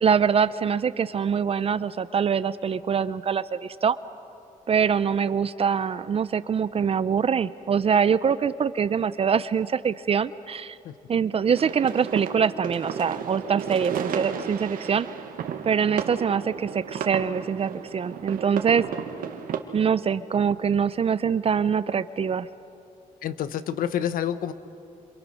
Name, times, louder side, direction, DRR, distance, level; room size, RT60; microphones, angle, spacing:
voice 1, 0.0-4.0 4.7-10.8 11.1-15.1 15.6-18.9 19.7-22.5, right 7 dB, 45° right, 15 dB, 0.6 m, -24 dB
sound 1, 11.5-19.6, right 7 dB, 90° right, 1.7 m, -33 dB
voice 2, 23.2-24.5, left 10 dB, 85° left, 13 dB, 1.0 m, -28 dB
28.0 x 26.5 x 6.3 m, 2.6 s
cardioid pair, 105°, 14 cm